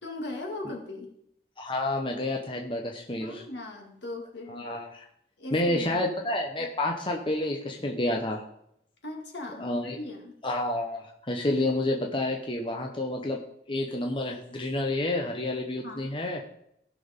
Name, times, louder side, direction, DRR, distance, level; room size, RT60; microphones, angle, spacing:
voice 1, 0.0-1.1 3.1-4.7 5.4-6.0 6.6-6.7 9.0-10.3 15.8-16.1, left 2 dB, 75° left, 0 dB, 2.5 m, -38 dB
voice 2, 1.6-3.4 4.5-5.1 5.5-8.4 9.6-10.0 10.4-13.4 13.7-16.4, left 1 dB, 25° left, 1 dB, 0.9 m, -29 dB
16.5 x 6.2 x 3.7 m, 0.73 s
head